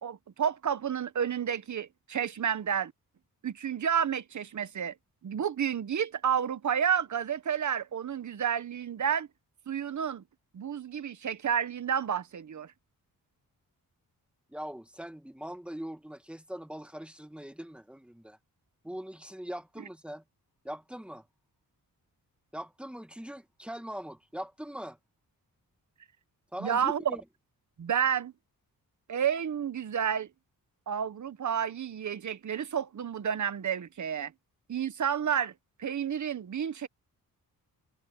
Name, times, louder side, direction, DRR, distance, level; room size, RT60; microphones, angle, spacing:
voice 1, 0.0-2.9 3.4-4.9 5.2-9.3 9.7-10.2 10.5-12.7 26.6-27.0 27.8-28.3 29.1-30.3 30.9-34.3 34.7-35.5 35.8-36.9, right 8 dB, 55° right, 1.2 m, -30 dB
voice 2, 14.5-18.4 18.8-20.2 20.6-21.3 22.5-25.0 26.5-27.2, equal, 5° right, 2.0 m, -41 dB
cardioid pair, 105°, 36 cm